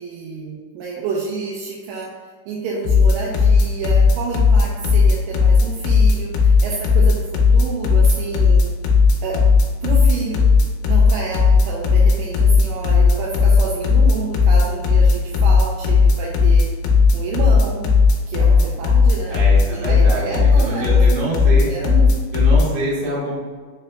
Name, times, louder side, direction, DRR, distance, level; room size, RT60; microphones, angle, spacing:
voice 1, 0.0-2.1 2.5-8.7 9.2-9.4 9.8-10.4 10.9-16.7 17.1-17.9 18.3-19.4 19.7-22.1, right 4 dB, 85° right, -3 dB, 2.1 m, -29 dB
sound 1, 2.8-22.7, left 4 dB, 85° left, 2.4 m, -14 dB
voice 2, 19.3-21.7 22.3-23.3, right 1 dB, 65° right, -5 dB, 2.3 m, -25 dB
5.5 x 3.8 x 2.2 m, 1.5 s
omnidirectional pair, 4.5 m